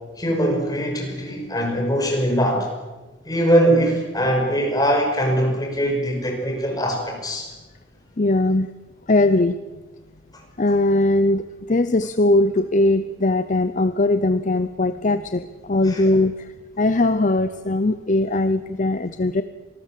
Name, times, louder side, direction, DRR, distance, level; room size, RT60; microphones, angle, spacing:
voice 1, 0.2-2.7 3.2-7.5 15.9-16.0, equal, 20° left, 2 dB, 5.5 m, -21 dB
voice 2, 8.2-8.7 9.1-9.6 10.6-19.4, left 2 dB, 45° left, 12 dB, 0.8 m, -20 dB
26.0 x 19.5 x 7.6 m, 1.2 s
head